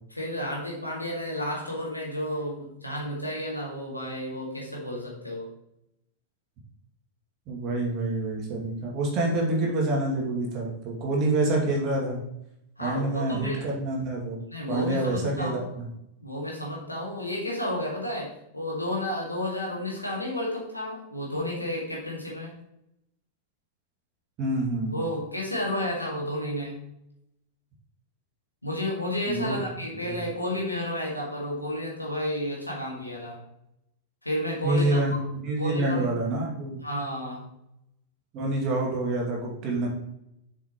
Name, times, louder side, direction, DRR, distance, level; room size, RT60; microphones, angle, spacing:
voice 1, 0.1-5.5 12.8-13.6 14.5-15.6 16.2-22.5 24.9-26.8 28.6-33.4 34.2-35.0 35.6-36.1 36.8-37.5, left 1 dB, 85° left, -3 dB, 2.1 m, -31 dB
voice 2, 7.5-12.2 12.8-14.4 14.7-15.9 24.4-25.0 29.3-29.5 30.1-30.2 34.6-36.8 38.3-39.9, right 2 dB, 40° right, -2 dB, 2.3 m, -27 dB
7.0 x 5.9 x 3.0 m, 0.80 s
figure-of-eight pair, 90°, 0 cm